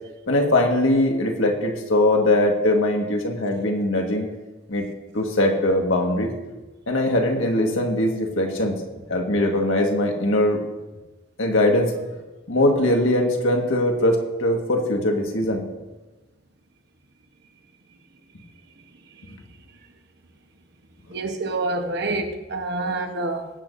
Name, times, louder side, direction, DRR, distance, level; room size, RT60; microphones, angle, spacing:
voice 1, 0.3-4.3 4.7-4.8 5.1-6.3 6.9-8.8 9.1-10.6 11.4-11.9 12.5-15.7, left 1 dB, 75° left, 2 dB, 1.8 m, -21 dB
voice 2, 21.1-23.5, right 2 dB, 50° right, 5 dB, 1.2 m, -27 dB
23.0 x 8.3 x 2.7 m, 1.2 s
head